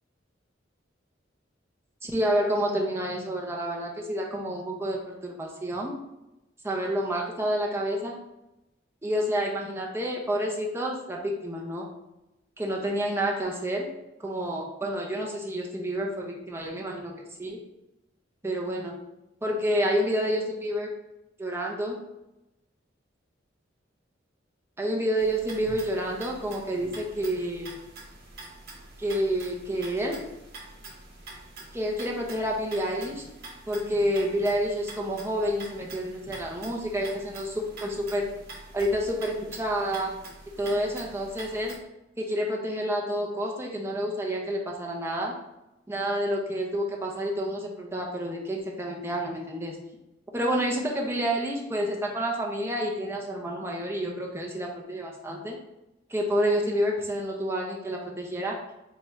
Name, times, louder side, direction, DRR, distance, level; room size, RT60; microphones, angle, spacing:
voice 1, 2.0-5.9 6.6-8.2 9.0-11.8 12.6-13.9 14.2-17.1 17.4-17.6 18.4-18.9 19.4-20.9 21.4-22.0 24.8-27.7 29.0-30.2 31.7-33.2 33.7-38.3 38.7-40.2 40.6-41.8 42.2-45.3 45.9-49.8 50.3-55.6 56.1-58.6, equal, 15° right, -1 dB, 0.6 m, -29 dB
sound 1, 25.2-41.8, right 2 dB, 55° right, 0.9 m, -45 dB
4.5 x 2.5 x 3.1 m, 0.94 s
head